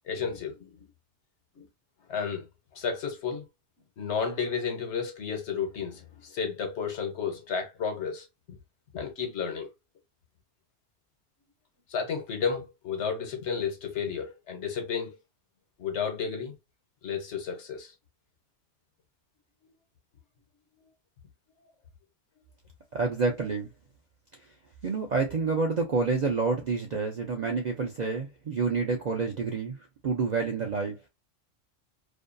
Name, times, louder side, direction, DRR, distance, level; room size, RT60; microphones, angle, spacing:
voice 1, 0.1-0.8 1.6-1.7 2.1-2.5 2.7-3.4 4.0-8.6 8.9-9.7 11.9-15.2 15.8-16.5 17.0-17.9, left 6 dB, 70° left, 1.1 m, -32 dB
voice 2, 22.9-23.7 24.8-29.8 30.0-31.0, right 4 dB, 60° right, 0.4 m, -28 dB
2.6 x 2.2 x 2.4 m
omnidirectional pair, 1.2 m